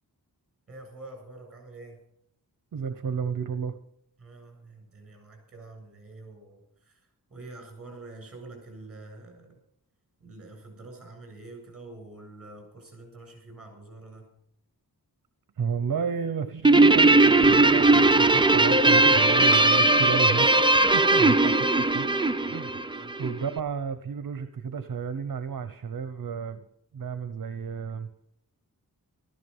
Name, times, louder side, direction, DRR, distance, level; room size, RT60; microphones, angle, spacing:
voice 1, 0.7-2.0 4.2-7.0 7.3-9.6 10.2-14.3 21.1-21.3 22.8-23.2, right 2 dB, 40° right, 3 dB, 7.5 m, -46 dB
voice 2, 2.7-3.7 15.6-22.1 22.4-26.6 26.9-28.1, right 6 dB, 60° right, 11 dB, 0.9 m, -32 dB
Guitar, 16.6-23.3, right 2 dB, 15° right, 0.5 m, -19 dB
14.5 x 14.0 x 5.6 m, 0.72 s
wide cardioid pair, 125°, 38 cm